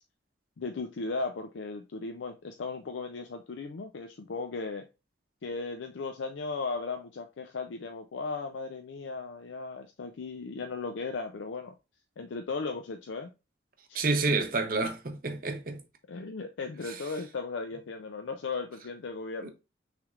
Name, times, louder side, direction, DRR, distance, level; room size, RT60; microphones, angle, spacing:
voice 1, 0.6-4.8 5.4-11.7 12.2-13.3 16.1-19.5, left 4 dB, 80° left, 0.5 m, -36 dB
voice 2, 13.9-15.8 19.4-19.5, right 3 dB, 45° right, 0.7 m, -29 dB
6.1 x 3.3 x 2.4 m
head